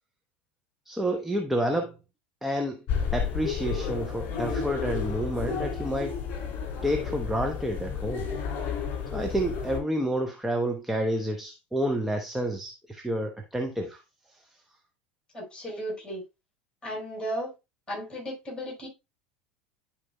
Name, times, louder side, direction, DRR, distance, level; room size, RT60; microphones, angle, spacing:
voice 1, 0.9-1.9 2.4-2.8 3.1-6.1 6.8-8.3 9.1-14.0 14.3-14.4, right 1 dB, 5° right, 1.0 m, -29 dB
sound 1, 2.9-9.8, left 6 dB, 40° left, 2.9 m, -31 dB
voice 2, 15.3-16.2 16.8-17.5 17.9-18.9, equal, 15° left, 4.6 m, -35 dB
12.5 x 4.3 x 2.3 m
figure-of-eight pair, 75°, 6 cm